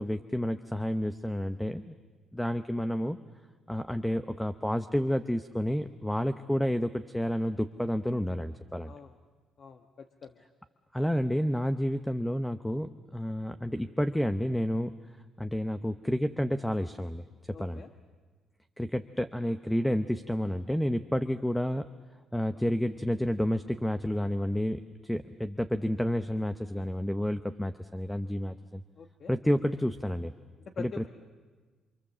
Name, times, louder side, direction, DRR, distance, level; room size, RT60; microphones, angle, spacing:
voice 1, 0.0-1.9 2.3-3.2 3.7-8.9 10.9-14.9 15.4-17.2 17.6-17.8 18.8-21.9 22.3-28.8 29.3-30.3 30.8-31.1, equal, 5° left, 10 dB, 0.8 m, -30 dB
voice 2, 9.6-10.4 17.5-17.9 29.0-29.4 30.6-31.1, left 6 dB, 55° left, 6 dB, 1.2 m, -45 dB
28.5 x 25.0 x 7.5 m, 1.4 s
cardioid pair, 90°, 0 cm